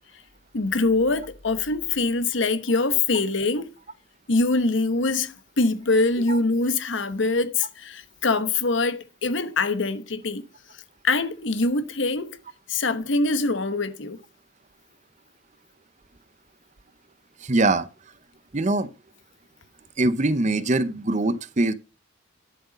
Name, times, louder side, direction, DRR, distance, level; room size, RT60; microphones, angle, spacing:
voice 1, 0.5-3.7 4.3-10.4 11.0-12.4 12.7-14.2, left 3 dB, 70° left, 1.0 m, -24 dB
voice 2, 17.4-17.9 18.5-18.9 20.0-21.7, right 2 dB, 35° right, 0.7 m, -22 dB
10.5 x 7.9 x 5.1 m
head